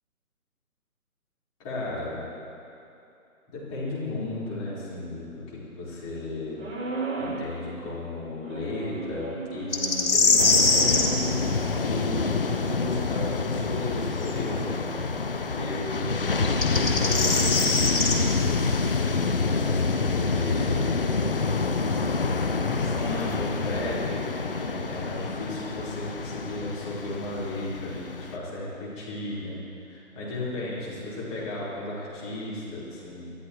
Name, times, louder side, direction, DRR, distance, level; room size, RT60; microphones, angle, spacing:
voice 1, 1.6-2.3 3.5-6.6 7.2-11.4 11.8-14.8 15.5-17.5 19.0-21.0 22.5-29.6 29.9-33.3, left 2 dB, 20° left, -8 dB, 4.3 m, -34 dB
sound 1, 6.6-7.5 8.4-12.1, right 4 dB, 60° right, 3.6 m, -36 dB
sound 2, 9.7-11.1 14.2-14.3 16.4-18.2, left 3 dB, 65° left, 2.4 m, -22 dB
sound 3, 10.4-28.4, left 4 dB, 40° left, 0.6 m, -27 dB
25.0 x 14.0 x 3.1 m, 2.7 s
figure-of-eight pair, 155°, 45 cm